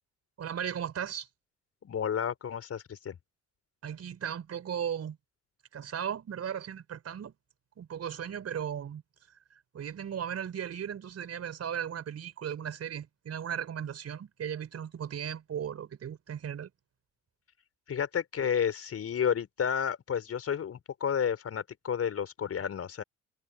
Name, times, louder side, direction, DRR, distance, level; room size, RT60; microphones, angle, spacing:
voice 1, 0.4-1.3 3.8-5.2 5.7-7.3 7.8-9.0 9.5-16.7, right 8 dB, 40° right, 5.3 m, -36 dB
voice 2, 1.8-3.2 17.9-23.0, left 8 dB, 40° left, 5.2 m, -31 dB
figure-of-eight pair, 50°, 37 cm